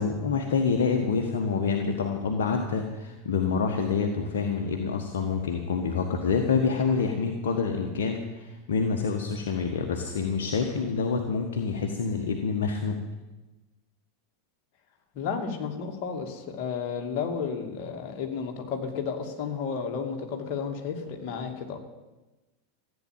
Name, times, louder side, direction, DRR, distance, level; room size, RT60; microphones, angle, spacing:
voice 1, 0.0-13.0, left 5 dB, 60° left, 2 dB, 1.5 m, -27 dB
voice 2, 15.1-21.8, left 6 dB, 45° left, 2 dB, 2.5 m, -32 dB
15.0 x 9.2 x 9.1 m, 1.1 s
figure-of-eight pair, 85°, 0 cm